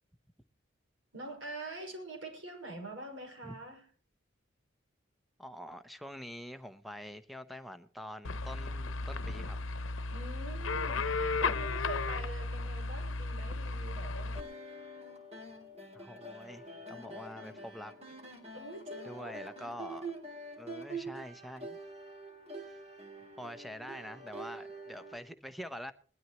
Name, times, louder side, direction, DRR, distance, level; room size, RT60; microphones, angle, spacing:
voice 1, 1.1-3.8 10.1-14.6 18.5-19.4, right 2 dB, 70° right, 5.9 m, -45 dB
voice 2, 5.4-9.6 11.1-11.4 15.9-17.9 19.0-20.1 20.6-21.8 23.4-25.9, equal, ahead, 0.8 m, -45 dB
sound 1, 8.2-14.4, left 3 dB, 80° left, 0.8 m, -34 dB
sound 2, 14.3-25.2, right 2 dB, 30° right, 3.1 m, -46 dB
20.5 x 13.0 x 3.0 m
head